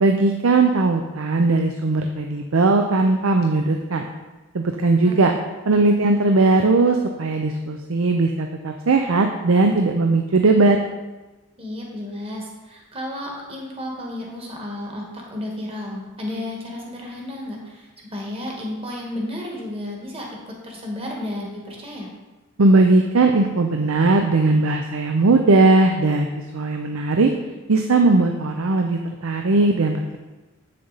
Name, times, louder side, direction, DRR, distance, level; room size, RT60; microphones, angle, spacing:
voice 1, 0.0-4.0 4.5-5.3 5.7-10.8 22.6-26.3 26.5-27.3 27.7-30.2, right 3 dB, 65° right, 4 dB, 0.5 m, -18 dB
voice 2, 11.6-22.1, left 1 dB, 25° right, -1 dB, 1.5 m, -32 dB
8.0 x 6.7 x 4.0 m, 1.2 s
head